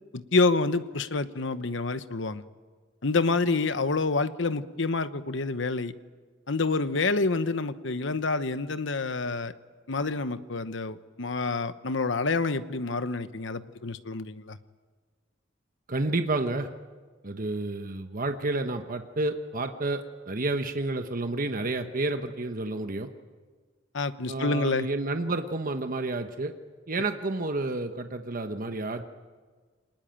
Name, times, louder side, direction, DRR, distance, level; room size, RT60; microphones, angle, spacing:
voice 1, 0.1-2.4 3.0-5.9 6.5-9.5 9.9-14.6 23.9-24.9, left 3 dB, 70° left, 12 dB, 1.0 m, -28 dB
voice 2, 15.9-16.7 17.2-23.1 24.3-26.5 26.9-29.0, right 2 dB, 45° right, 7 dB, 1.1 m, -30 dB
26.0 x 20.0 x 9.0 m, 1.5 s
head